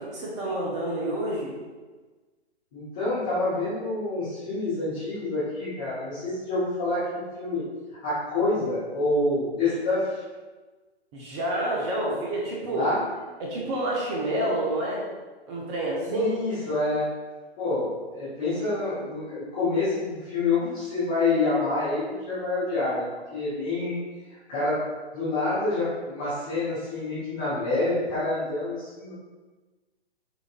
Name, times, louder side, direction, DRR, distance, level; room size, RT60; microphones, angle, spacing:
voice 1, 0.0-1.6 11.1-12.9 13.4-15.0 15.5-16.3, right 1 dB, 25° right, -3 dB, 0.8 m, -28 dB
voice 2, 2.7-7.6 8.0-10.2 12.7-13.0 16.0-17.1 17.6-24.0 24.2-24.8 25.1-29.1, left 2 dB, 5° left, -13 dB, 0.3 m, -27 dB
6.8 x 2.6 x 2.4 m, 1.3 s
figure-of-eight pair, 125°, 32 cm